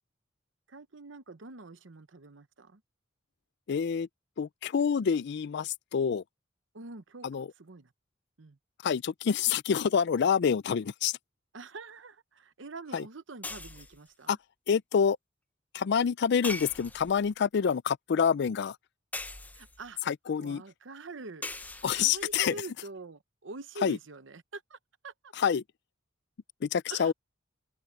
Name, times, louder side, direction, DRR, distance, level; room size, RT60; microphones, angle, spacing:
voice 1, 0.7-2.8 6.7-7.9 8.4-8.6 11.5-14.4 19.5-20.0 20.4-21.4 21.9-24.8 25.0-25.3 26.9-27.1, right 3 dB, 70° right, 1.0 m, -45 dB
voice 2, 3.7-4.1 4.4-6.2 7.2-7.5 8.8-11.2 12.9-13.0 14.3-14.4 14.7-15.2 15.7-18.8 20.1-20.6 21.8-22.5 23.8-24.0 25.4-25.6 26.6-27.1, left 7 dB, 60° left, 0.4 m, -27 dB
sound 1, 13.4-14.1 16.4-17.3 19.1-19.9 21.4-22.5, left 2 dB, 10° left, 0.6 m, -40 dB
open air
head